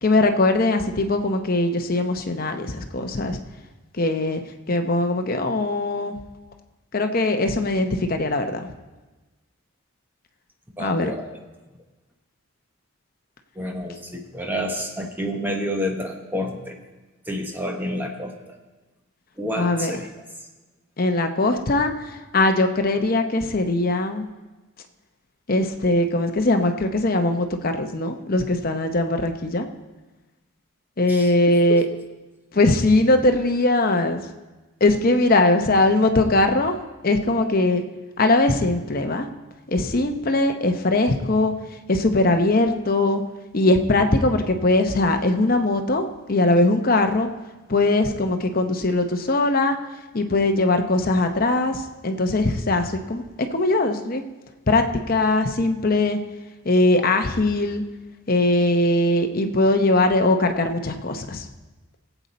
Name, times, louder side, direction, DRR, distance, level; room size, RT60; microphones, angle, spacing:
voice 1, 0.0-3.4 3.9-4.4 4.7-6.1 6.9-8.7 10.8-11.1 19.6-20.0 21.0-24.3 25.5-29.7 31.0-31.9 32.5-34.2 34.8-37.8 38.2-39.3 39.7-41.5 41.9-43.2 43.5-47.3 47.7-49.7 50.1-53.2 53.5-54.2 54.7-56.2 56.6-57.8 58.3-61.5, left 2 dB, 40° left, 6 dB, 0.8 m, -21 dB
voice 2, 10.7-11.4 13.5-16.8 17.2-18.6 19.4-20.5 31.1-31.3 31.7-32.0, equal, 10° right, 2 dB, 1.0 m, -29 dB
17.5 x 8.1 x 4.2 m, 1.2 s
head